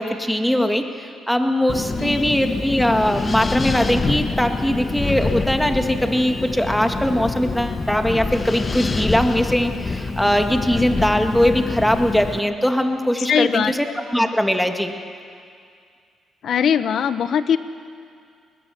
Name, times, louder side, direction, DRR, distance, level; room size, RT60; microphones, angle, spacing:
voice 1, 0.0-14.9, equal, 5° left, 5 dB, 1.8 m, -21 dB
Wind, 1.7-12.4, left 3 dB, 30° left, 1.0 m, -26 dB
voice 2, 13.3-13.7 16.4-17.6, left 8 dB, 65° left, 13 dB, 1.0 m, -20 dB
21.0 x 20.5 x 7.7 m, 2.3 s
cardioid pair, 90°, 0 cm